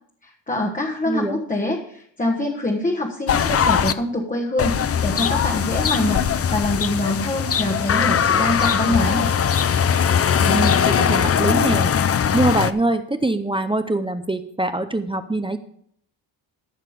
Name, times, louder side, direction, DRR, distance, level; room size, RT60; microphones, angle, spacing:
voice 1, 0.2-9.3, left 1 dB, 20° left, 0 dB, 1.3 m, -24 dB
voice 2, 1.1-1.4 10.4-11.9 12.3-15.6, right 2 dB, 10° right, 9 dB, 0.6 m, -23 dB
sound 1, 3.3-3.9 4.6-12.7, left 7 dB, 35° left, 0.5 m, -20 dB
13.5 x 6.5 x 5.0 m, 0.64 s
wide cardioid pair, 130°, 44 cm